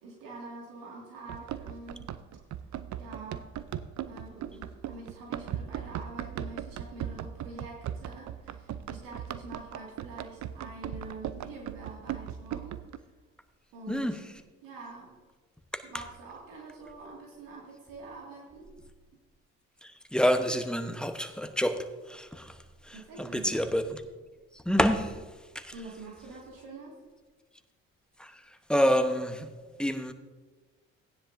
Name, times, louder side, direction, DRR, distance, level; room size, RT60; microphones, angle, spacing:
voice 1, 0.0-2.1 3.0-3.5 4.0-12.8 13.7-14.2 14.6-15.1 15.8-18.7 22.9-23.6 25.7-27.0, right 3 dB, 80° right, 2.2 m, -45 dB
Run, 1.3-13.0, right 10 dB, 55° right, 0.6 m, -38 dB
voice 2, 13.9-14.2 15.7-15.8 19.8-22.5 22.8-24.0 24.6-25.2 25.5-25.7 28.2-28.4 28.7-29.5 29.8-30.1, equal, 5° left, 1.0 m, -28 dB
15.5 x 9.9 x 2.6 m
supercardioid pair, 55°, 34 cm